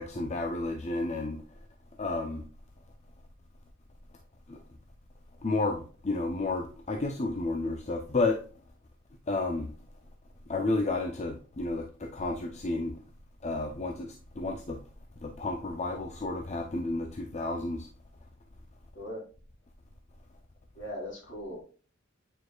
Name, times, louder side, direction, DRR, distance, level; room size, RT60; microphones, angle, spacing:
voice 1, 0.0-1.4 2.0-2.5 4.5-4.6 5.4-8.4 9.3-9.7 10.5-13.0 13.4-14.8 15.2-17.9, left 2 dB, 35° left, 3 dB, 0.6 m, -31 dB
voice 2, 20.7-21.6, equal, 65° left, -2 dB, 2.9 m, -39 dB
8.7 x 4.8 x 2.3 m, 0.39 s
head